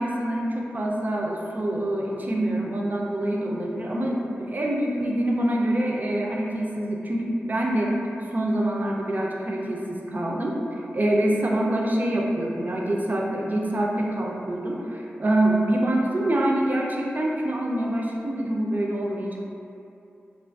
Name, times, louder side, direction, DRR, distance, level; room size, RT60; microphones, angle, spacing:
voice 1, 0.0-8.0 8.3-10.6 10.9-19.4, right 1 dB, 40° right, -2 dB, 0.4 m, -25 dB
2.4 x 2.3 x 2.2 m, 2.7 s
cardioid pair, 45°, 5 cm